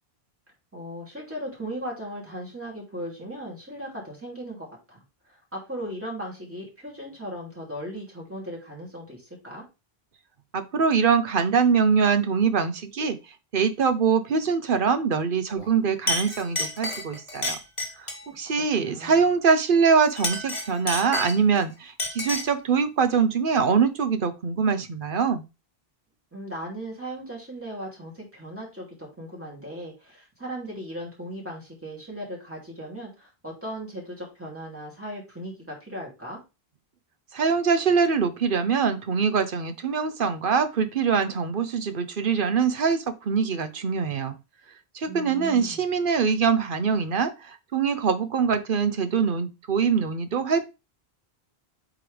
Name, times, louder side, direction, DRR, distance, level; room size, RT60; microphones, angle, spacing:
voice 1, 0.7-5.0 5.2-9.6 18.4-18.5 18.8-19.2 26.3-36.4 45.1-45.8, equal, 10° right, -3 dB, 2.9 m, -37 dB
voice 2, 10.5-13.2 13.5-17.6 18.4-25.4 37.3-44.4 44.9-50.6, right 6 dB, 55° right, 10 dB, 0.9 m, -23 dB
Chink clink, 15.6-15.8 16.1-18.3 20.1-21.6 22.0-22.6, left 1 dB, 30° left, 1.6 m, -30 dB
8.0 x 3.8 x 3.4 m, 0.27 s
omnidirectional pair, 1.1 m